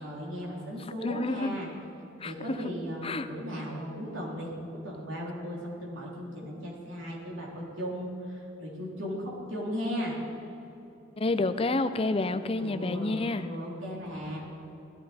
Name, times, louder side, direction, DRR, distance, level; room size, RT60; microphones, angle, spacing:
voice 1, 0.0-1.7 2.2-4.5 4.8-10.2 12.6-14.4, equal, 90° right, -3 dB, 3.5 m, -36 dB
voice 2, 1.0-1.6 2.2-2.6 3.0-3.3 11.2-13.5, left 2 dB, 30° left, 11 dB, 0.5 m, -29 dB
17.5 x 13.5 x 4.3 m, 2.9 s
head